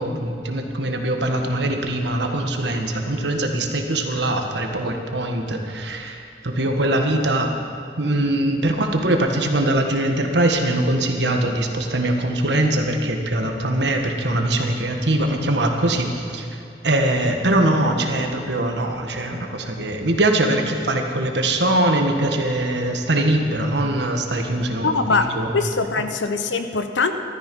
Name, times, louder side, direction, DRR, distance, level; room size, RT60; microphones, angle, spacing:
voice 1, 0.0-7.6 8.0-16.4 16.8-25.5, right 1 dB, 70° right, 3 dB, 1.5 m, -22 dB
voice 2, 24.8-25.3 25.5-27.1, left 4 dB, 85° left, 8 dB, 1.0 m, -22 dB
14.5 x 13.0 x 5.4 m, 2.5 s
head